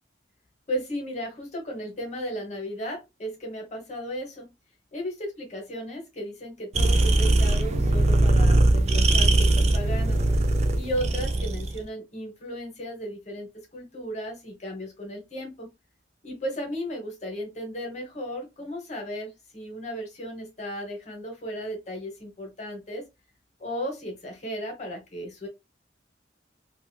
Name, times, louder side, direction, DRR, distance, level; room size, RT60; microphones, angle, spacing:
voice 1, 0.7-4.5 4.9-10.2 10.7-15.7 16.2-23.1 23.6-25.5, equal, 40° left, 1.1 m, -35 dB
sound 1, 6.7-11.8, right 2 dB, 35° right, 0.4 m, -21 dB
3.0 x 2.5 x 2.2 m
head